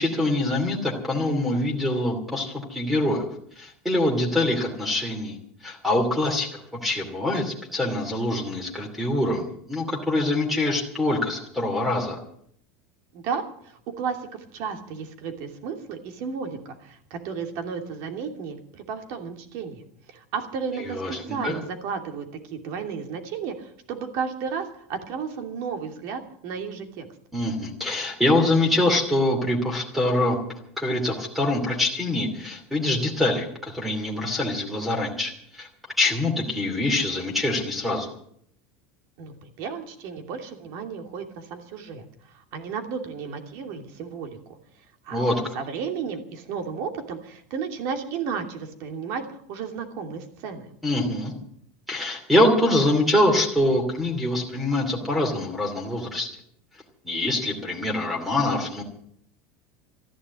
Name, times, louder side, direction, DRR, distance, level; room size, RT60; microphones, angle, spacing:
voice 1, 0.0-3.3 3.6-5.4 5.6-12.2 20.9-21.5 27.3-30.4 30.8-35.7 36.0-38.1 45.1-45.5 50.8-51.3 51.9-56.3 57.0-58.8, left 1 dB, ahead, 3 dB, 2.6 m, -24 dB
voice 2, 13.1-19.8 20.1-27.1 39.2-42.1 42.3-44.6 45.0-50.7, right 6 dB, 50° right, 5 dB, 2.8 m, -33 dB
14.0 x 11.0 x 8.3 m, 0.65 s
supercardioid pair, 155°, 6 cm